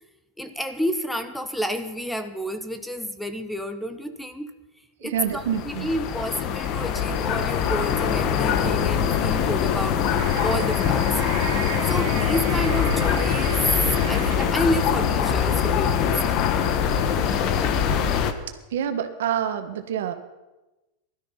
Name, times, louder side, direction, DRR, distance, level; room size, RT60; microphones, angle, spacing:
voice 1, 0.4-4.5 5.0-10.0 10.4-11.2 11.9-13.7 14.1-16.2, equal, 5° left, 10 dB, 1.0 m, -30 dB
voice 2, 5.0-5.9 18.7-20.1, right 9 dB, 80° right, 8 dB, 1.5 m, -27 dB
sound 1, 5.2-18.3, left 8 dB, 45° left, 1.3 m, -23 dB
sound 2, 9.8-14.6, right 9 dB, 60° right, 2.0 m, -36 dB
16.0 x 12.5 x 5.8 m, 1.1 s
supercardioid pair, 135°, 0 cm